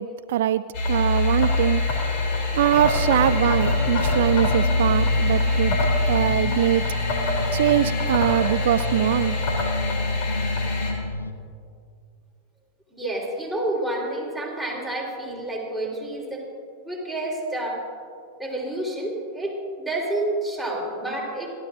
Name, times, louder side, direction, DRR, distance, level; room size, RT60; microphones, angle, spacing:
voice 1, 0.0-1.8 2.5-5.8 6.1-6.8 7.5-9.4, right 12 dB, 55° right, 14 dB, 0.3 m, -22 dB
sound 1, 0.7-10.9, left 2 dB, 45° left, 3.0 m, -23 dB
sound 2, 3.3-11.3, left 2 dB, 80° left, 0.9 m, -32 dB
voice 2, 12.9-16.4 16.8-17.8 18.4-21.5, right 1 dB, ahead, -2 dB, 3.7 m, -29 dB
29.0 x 12.5 x 2.5 m, 2.3 s
figure-of-eight pair, 90°, 0 cm